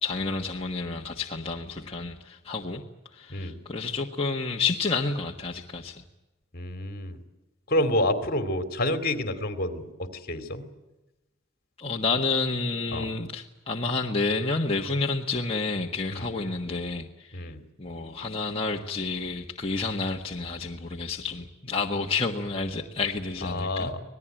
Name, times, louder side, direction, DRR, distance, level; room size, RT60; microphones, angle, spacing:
voice 1, 0.0-2.8 3.1-6.0 11.8-17.4 17.8-23.9, left 3 dB, 30° left, -1 dB, 1.5 m, -30 dB
voice 2, 6.5-7.2 7.7-10.7 12.9-13.1 16.1-16.3 17.3-17.6 23.4-24.0, left 1 dB, 50° left, 10 dB, 2.7 m, -28 dB
26.5 x 19.0 x 9.1 m, 1.0 s
head